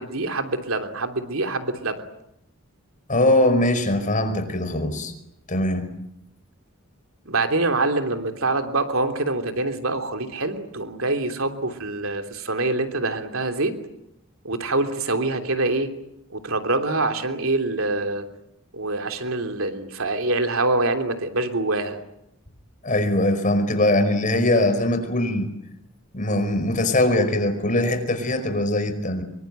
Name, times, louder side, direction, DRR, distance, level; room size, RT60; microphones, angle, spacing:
voice 1, 0.0-2.0 7.2-13.7 14.4-15.9 16.3-18.2 18.7-22.0, right 2 dB, 70° right, 6 dB, 3.2 m, -25 dB
voice 2, 3.1-5.1 5.5-5.9 22.8-25.5 26.1-29.2, left 1 dB, 40° left, 8 dB, 5.2 m, -21 dB
26.0 x 24.0 x 9.3 m, 0.80 s
head